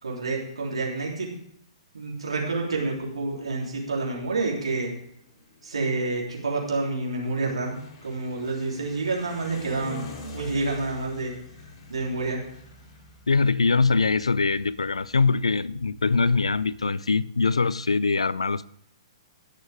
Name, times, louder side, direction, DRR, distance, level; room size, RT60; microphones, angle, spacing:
voice 1, 0.0-1.3 1.9-4.9 5.6-10.1 10.3-11.3 11.9-12.4, right 3 dB, 75° right, 3.1 m, -28 dB
sound 1, 3.1-16.8, left 3 dB, 40° left, 3.6 m, -47 dB
voice 2, 13.3-18.7, left 4 dB, 80° left, 0.4 m, -23 dB
18.5 x 6.6 x 3.5 m
figure-of-eight pair, 120°, 3 cm